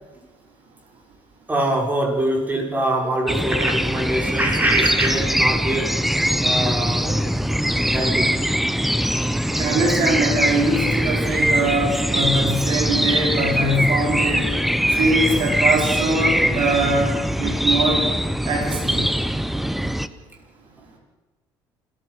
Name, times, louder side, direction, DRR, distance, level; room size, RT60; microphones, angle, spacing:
voice 1, 1.5-5.9 6.4-7.2 7.8-8.3, right 1 dB, 20° right, 1 dB, 6.3 m, -23 dB
sound 1, 3.3-20.1, equal, ahead, 1.0 m, -22 dB
voice 2, 9.6-14.4 15.0-18.0 18.4-19.1, right 2 dB, 60° right, 0 dB, 5.0 m, -22 dB
28.0 x 14.5 x 6.6 m, 1.2 s
cardioid pair, 100°, 9 cm